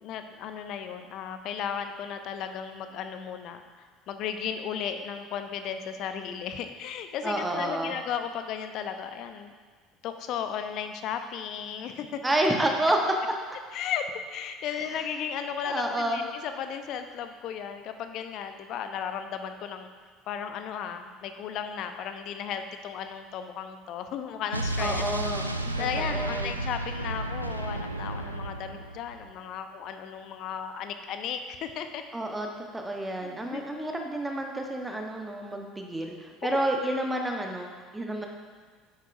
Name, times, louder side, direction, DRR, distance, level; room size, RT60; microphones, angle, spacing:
voice 1, 0.0-9.5 10.0-12.2 13.7-14.0 14.3-19.9 20.3-25.1 25.8-32.0 33.2-33.9 36.4-36.7, left 8 dB, 50° left, 8 dB, 0.7 m, -35 dB
voice 2, 7.2-7.9 12.2-13.0 15.6-16.2 24.8-26.5 32.1-32.5 32.7-38.3, right 1 dB, 10° right, 2 dB, 1.1 m, -29 dB
Explosion, 24.5-29.3, right 2 dB, 90° right, 0.3 m, -32 dB
10.0 x 8.2 x 2.6 m, 1.5 s
figure-of-eight pair, 65°, 0 cm